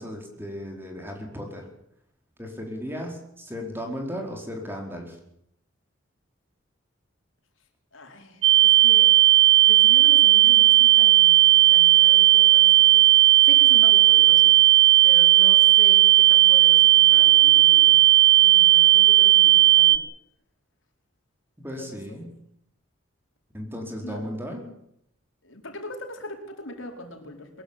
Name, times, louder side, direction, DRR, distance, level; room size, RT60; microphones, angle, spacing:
voice 1, 0.0-1.7 2.4-5.2 21.6-22.3 23.5-24.7, equal, 10° right, 2 dB, 4.7 m, -35 dB
voice 2, 7.9-9.1 9.6-14.6 15.0-18.0 18.4-20.0 21.8-22.2 24.0-24.3 25.4-27.6, left 1 dB, 70° left, 3 dB, 4.7 m, -40 dB
sound 1, 8.4-20.0, right 14 dB, 70° right, 1.3 m, -15 dB
23.0 x 15.5 x 9.0 m, 0.73 s
head